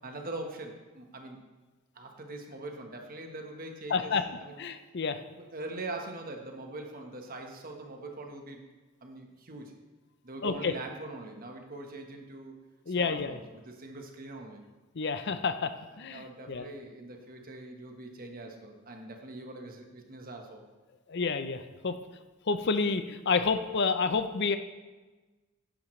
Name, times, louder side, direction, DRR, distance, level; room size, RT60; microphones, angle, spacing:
voice 1, 0.0-1.4 1.9-4.6 5.3-8.6 9.0-9.7 10.2-12.6 12.9-14.6 15.8-20.6, right 2 dB, 45° right, 3 dB, 1.2 m, -42 dB
voice 2, 3.9-4.2 4.6-5.2 10.4-10.7 12.9-13.4 15.0-16.7 21.1-21.9 22.5-24.6, left 4 dB, 55° left, 10 dB, 0.6 m, -29 dB
11.0 x 10.0 x 3.2 m, 1.2 s
head